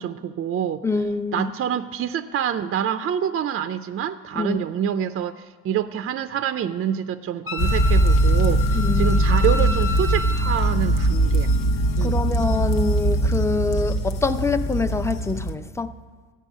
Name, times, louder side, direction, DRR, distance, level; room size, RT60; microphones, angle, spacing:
voice 1, 0.0-0.8 1.3-11.5 12.0-12.2, right 9 dB, 45° right, 0.4 m, -26 dB
voice 2, 0.8-1.5 4.3-4.7 8.7-9.2 9.5-9.8 12.0-16.0, left 3 dB, 10° left, 0.5 m, -25 dB
Wind instrument woodwind instrument, 7.5-10.7, left 2 dB, 45° left, 1.2 m, -32 dB
sound 1, 7.6-15.5, right 1 dB, 85° left, 1.0 m, -21 dB
13.5 x 5.5 x 9.1 m
cardioid pair, 105°, 32 cm